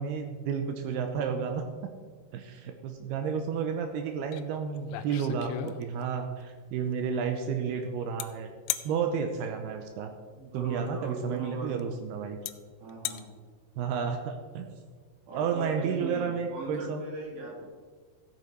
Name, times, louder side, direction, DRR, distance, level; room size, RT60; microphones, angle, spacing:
voice 1, 0.0-1.7 2.3-8.5 8.8-10.1 10.5-12.4 13.8-14.7 15.3-17.0, right 6 dB, 85° right, 5 dB, 2.3 m, -31 dB
sound 1, 4.3-4.4 4.8-6.2 8.2-8.3 8.7-8.9 10.8-10.9 11.8-11.9 12.5-12.6 12.9-13.2, left 13 dB, 85° left, 2.5 m, -34 dB
voice 2, 10.3-11.9 12.8-13.3 15.3-17.6, right 2 dB, 65° right, -3 dB, 4.7 m, -40 dB
14.5 x 8.2 x 4.6 m, 1.5 s
omnidirectional pair, 5.5 m